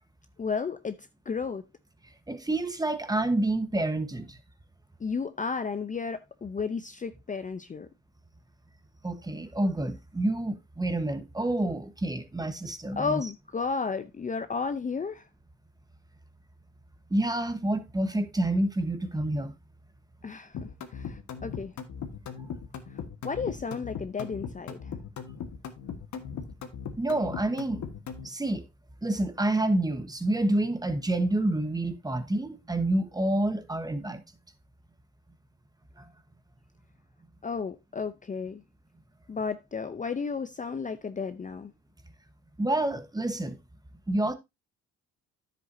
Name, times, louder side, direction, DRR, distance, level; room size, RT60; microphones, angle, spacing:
voice 1, 0.4-1.6 5.0-7.9 13.0-15.2 20.2-21.7 23.2-24.8 37.4-38.6 39.3-41.7, left 5 dB, 25° left, 0.6 m, -33 dB
voice 2, 2.3-4.4 9.0-13.2 17.1-19.5 27.0-27.9 28.2-28.6 29.0-34.2 36.0-36.1 42.6-43.6 44.1-44.3, right 1 dB, 15° right, 1.2 m, -28 dB
sound 1, 20.5-28.3, left 7 dB, 65° left, 1.6 m, -38 dB
10.0 x 7.8 x 2.7 m
cardioid pair, 90°, 30 cm